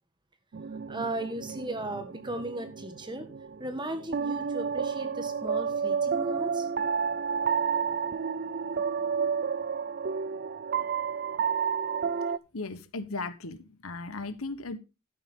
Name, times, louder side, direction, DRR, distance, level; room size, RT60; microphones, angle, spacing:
sound 1, 0.5-12.4, right 6 dB, 45° right, 0.5 m, -31 dB
voice 1, 0.9-3.3 3.6-6.7, right 1 dB, 20° right, 8 dB, 1.6 m, -36 dB
voice 2, 12.5-14.8, left 3 dB, 70° left, 12 dB, 1.2 m, -36 dB
12.0 x 8.9 x 3.8 m, 0.28 s
head